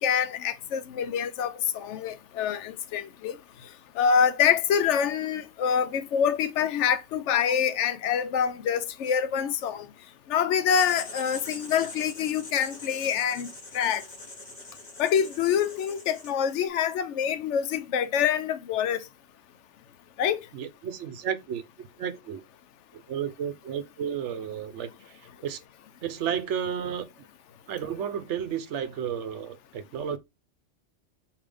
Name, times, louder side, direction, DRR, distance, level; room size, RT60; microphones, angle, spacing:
voice 1, 0.0-3.4 4.0-9.9 10.3-14.0 15.0-19.0 20.2-20.4, left 8 dB, 75° left, 0.9 m, -26 dB
Writing, 10.7-16.6, left 2 dB, 35° left, 1.3 m, -43 dB
voice 2, 20.5-22.4 23.1-25.6 26.0-27.1 27.7-30.2, right 8 dB, 75° right, 0.9 m, -32 dB
5.3 x 2.8 x 3.3 m
omnidirectional pair, 1.3 m